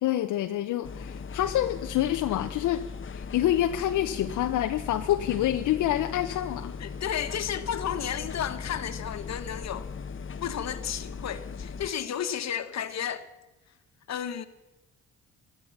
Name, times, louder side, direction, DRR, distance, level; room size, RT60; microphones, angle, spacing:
voice 1, 0.0-2.8 3.1-6.7, left 12 dB, 80° left, 0.9 m, -27 dB
sound 1, 0.8-11.9, left 5 dB, 40° left, 1.1 m, -38 dB
voice 2, 6.8-9.9 10.4-13.3 14.1-14.5, left 9 dB, 60° left, 1.6 m, -32 dB
14.0 x 13.0 x 7.3 m
cardioid pair, 90°, 30 cm